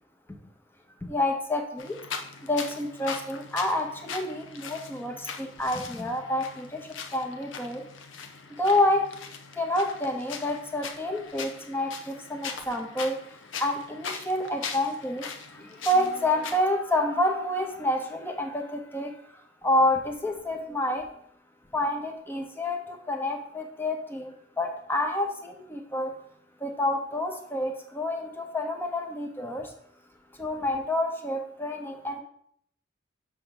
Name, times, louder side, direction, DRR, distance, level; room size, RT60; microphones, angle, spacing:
voice 1, 1.0-2.0 2.5-7.8 8.6-9.0 9.6-13.1 13.6-15.2 15.5-19.1 19.6-21.1 21.7-26.1 26.6-29.7 30.4-32.2, left 1 dB, 10° left, 3 dB, 0.8 m, -28 dB
sound 1, 1.8-16.6, left 5 dB, 70° left, 0.7 m, -40 dB
6.7 x 3.5 x 5.8 m, 0.66 s
head